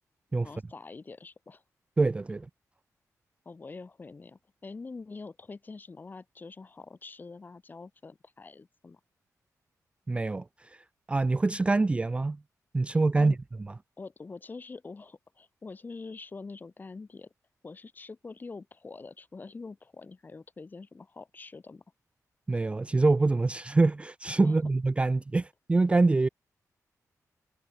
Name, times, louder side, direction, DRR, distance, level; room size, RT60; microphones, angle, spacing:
voice 1, 0.4-1.6 3.4-9.0 13.2-13.4 14.0-17.3 17.6-21.8 24.4-24.6, left 4 dB, 30° left, 2.5 m, -45 dB
voice 2, 2.0-2.5 10.1-12.4 12.7-13.3 22.5-26.3, right 3 dB, 20° right, 0.3 m, -25 dB
wide cardioid pair, 135°, 6 cm